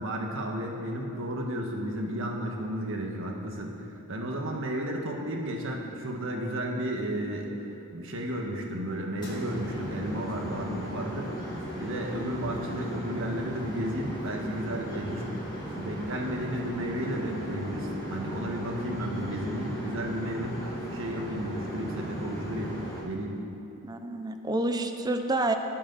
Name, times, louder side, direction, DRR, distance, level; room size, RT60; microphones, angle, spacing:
voice 1, 0.0-7.5 7.9-11.3 11.8-15.3 15.7-20.6 20.9-22.7 23.0-23.4, equal, 60° right, 1 dB, 1.6 m, -33 dB
sound 1, 9.2-23.0, equal, 20° left, 2.8 m, -37 dB
voice 2, 23.8-25.6, right 2 dB, 20° right, 6 dB, 0.7 m, -28 dB
19.0 x 8.5 x 4.2 m, 2.8 s
head